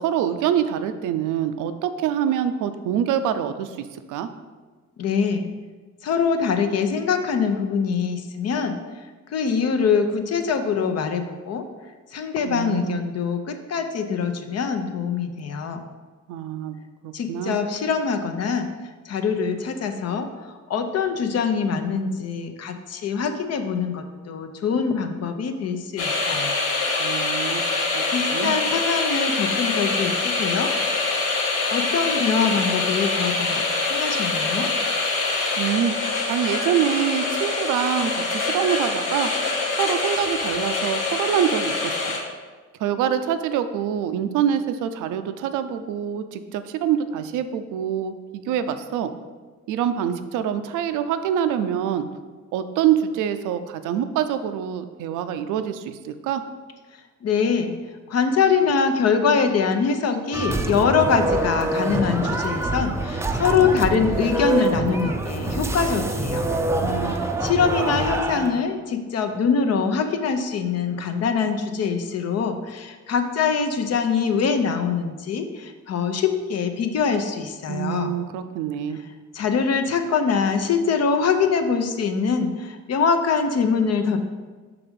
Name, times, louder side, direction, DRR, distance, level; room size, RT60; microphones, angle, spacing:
voice 1, 0.0-4.3 12.5-13.0 16.3-17.6 27.0-27.6 27.9-28.0 28.3-28.6 35.6-39.3 39.8-42.2 42.8-49.1 49.7-52.1 52.5-56.4 66.8-67.5 77.7-79.0, right 9 dB, 90° right, 10 dB, 0.5 m, -25 dB
voice 2, 5.0-5.5 6.0-8.8 9.3-11.6 12.1-15.8 17.1-18.7 19.0-26.6 28.1-30.7 31.7-33.6 33.9-34.7 57.2-57.7 58.1-66.5 67.4-78.1 79.3-84.2, left 5 dB, 55° left, 6 dB, 0.7 m, -23 dB
sound 1, 26.0-42.2, left 3 dB, 85° left, 1.3 m, -25 dB
sound 2, 60.3-68.6, right 2 dB, 10° right, 0.4 m, -25 dB
5.9 x 3.6 x 5.2 m, 1.4 s
cardioid pair, 90°, 30 cm